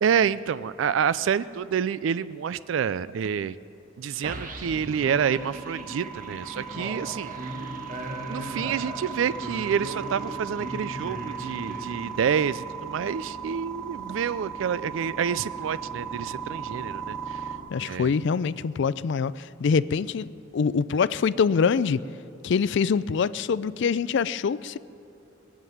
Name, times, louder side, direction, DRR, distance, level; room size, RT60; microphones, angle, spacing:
voice 1, 0.0-3.5 4.0-7.7 8.3-17.5 17.8-18.1, right 7 dB, 80° right, 17 dB, 0.4 m, -28 dB
sound 1, 4.2-12.5, right 1 dB, 45° right, 1.3 m, -38 dB
sound 2, 5.1-17.6, right 6 dB, 5° left, 2.6 m, -37 dB
voice 2, 17.7-22.0 22.4-24.8, left 5 dB, 65° left, 18 dB, 0.4 m, -24 dB
20.0 x 7.4 x 9.3 m, 2.9 s
head